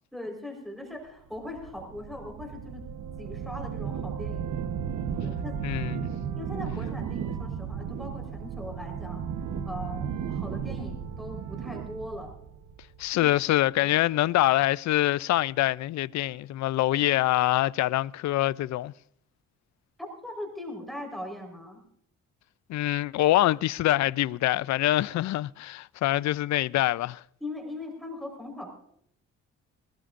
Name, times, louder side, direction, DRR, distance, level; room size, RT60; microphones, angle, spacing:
voice 1, 0.1-2.9 3.2-4.6 5.2-5.8 6.3-9.2 9.7-12.3 20.0-21.8 27.4-28.7, left 1 dB, ahead, 4.3 m, -40 dB
sound 1, 1.3-13.4, right 7 dB, 75° right, 1.1 m, -35 dB
voice 2, 5.6-6.1 13.0-18.9 22.7-27.2, left 15 dB, 65° left, 0.5 m, -25 dB
20.5 x 19.0 x 2.5 m
cardioid pair, 90°, 30 cm